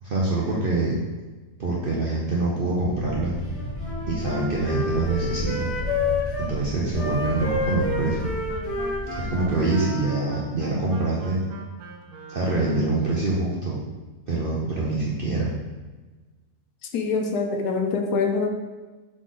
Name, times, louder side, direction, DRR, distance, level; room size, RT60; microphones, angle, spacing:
voice 1, 0.0-1.0 1.6-3.3 4.1-5.7 6.4-8.3 9.1-11.4 12.3-13.8 14.3-15.5, right 2 dB, 55° right, -5 dB, 0.6 m, -25 dB
sound 1, 2.8-9.5, left 1 dB, 30° left, 1.4 m, -34 dB
Wind instrument woodwind instrument, 3.5-6.5 6.9-10.3, left 3 dB, 45° left, 1.4 m, -30 dB
Wind instrument woodwind instrument 2, 7.2-13.0, right 5 dB, 75° right, 1.1 m, -40 dB
voice 2, 16.9-18.5, left 4 dB, 80° left, 3 dB, 1.2 m, -24 dB
3.9 x 3.8 x 3.6 m, 1.3 s
omnidirectional pair, 1.7 m